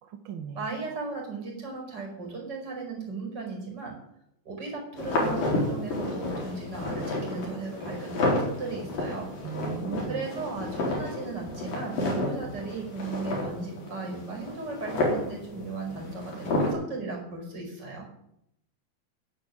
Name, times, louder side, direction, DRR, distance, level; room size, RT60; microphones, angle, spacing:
voice 1, 0.0-0.7 9.4-10.3, right 8 dB, 65° right, 6 dB, 1.3 m, -37 dB
voice 2, 0.5-3.9 4.4-9.3 10.1-18.1, right 3 dB, 30° right, 0 dB, 5.7 m, -36 dB
sound 1, 5.0-16.7, left 2 dB, 70° left, 6.0 m, -31 dB
11.0 x 10.5 x 9.8 m, 0.77 s
omnidirectional pair, 4.2 m